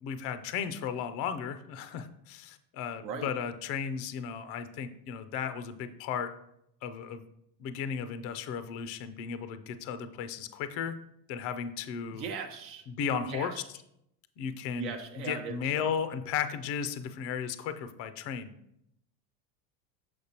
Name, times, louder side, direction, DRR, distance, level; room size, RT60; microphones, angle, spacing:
voice 1, 0.0-6.3 6.8-7.2 7.6-10.9 11.3-12.3 12.9-13.6 14.4-14.9 15.3-18.5, left 7 dB, 30° left, 11 dB, 0.4 m, -35 dB
voice 2, 3.0-3.3 12.1-12.8 13.2-13.6 14.8-16.0, right 6 dB, 80° right, 4 dB, 0.9 m, -39 dB
6.8 x 6.0 x 2.8 m, 0.78 s
hypercardioid pair, 105°, 50 cm